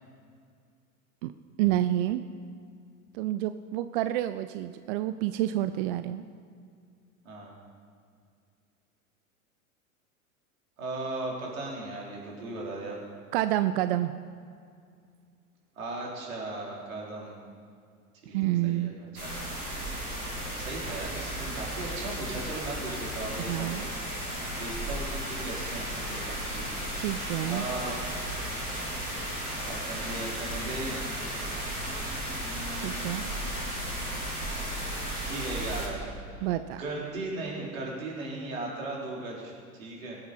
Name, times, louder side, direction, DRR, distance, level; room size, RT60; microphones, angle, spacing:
voice 1, 1.6-2.2 3.1-6.2 13.3-14.1 18.3-18.9 23.5-23.9 27.0-27.7 32.8-33.2 36.4-36.8, right 14 dB, 40° right, 11 dB, 0.5 m, -28 dB
voice 2, 10.8-13.0 15.8-17.4 18.2-19.4 20.6-23.9 24.5-26.7 27.5-28.0 29.6-31.0 32.4-33.7 35.2-36.5 36.8-40.2, right 2 dB, 65° right, -3 dB, 3.8 m, -37 dB
sound 1, 19.2-35.9, right 1 dB, 90° right, 3.2 m, -34 dB
22.0 x 9.4 x 4.3 m, 2.2 s
figure-of-eight pair, 85°, 43 cm